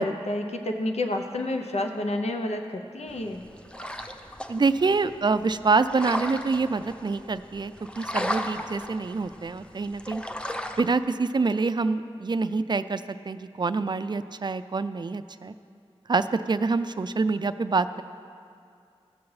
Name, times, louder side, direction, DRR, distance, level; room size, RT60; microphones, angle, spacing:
voice 1, 0.0-3.4, left 1 dB, 85° left, 4 dB, 0.6 m, -29 dB
sound 1, 3.1-11.0, equal, 10° left, 0.6 m, -36 dB
voice 2, 4.5-10.2 10.8-15.5 16.1-18.0, right 4 dB, 45° right, 12 dB, 0.4 m, -26 dB
15.5 x 7.1 x 3.2 m, 2.3 s
wide cardioid pair, 55°, 11 cm